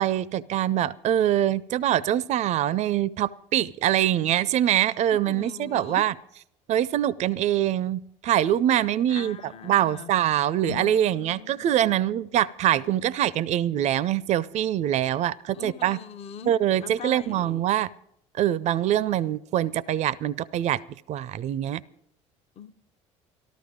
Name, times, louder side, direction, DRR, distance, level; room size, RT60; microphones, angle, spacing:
voice 1, 0.0-6.2 6.7-16.0 16.4-17.9 18.3-20.8 21.1-21.8, right 11 dB, 45° right, 0.5 m, -24 dB
voice 2, 5.3-6.0 9.1-10.1 15.5-16.5 16.8-17.6 22.6-22.7, left 7 dB, 40° left, 0.7 m, -41 dB
sound 1, 10.6-13.0, left 7 dB, 75° left, 1.1 m, -43 dB
13.5 x 12.5 x 5.0 m
hypercardioid pair, 70°, 16 cm